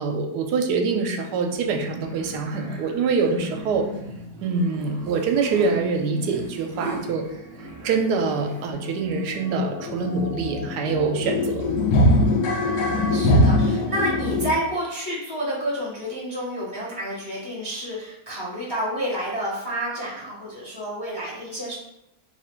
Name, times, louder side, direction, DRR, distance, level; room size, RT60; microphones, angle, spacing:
voice 1, 0.0-3.9 4.4-7.3 7.8-11.6, right 4 dB, 85° right, 4 dB, 1.2 m, -24 dB
sound 1, 1.5-8.7, right 2 dB, 65° right, 0.6 m, -38 dB
sound 2, 7.7-7.8 8.1-8.2 8.5-14.5, left 1 dB, 75° left, 1.1 m, -22 dB
voice 2, 12.7-21.8, right 1 dB, 20° left, -6 dB, 0.6 m, -30 dB
3.0 x 2.4 x 4.3 m, 0.82 s
omnidirectional pair, 1.7 m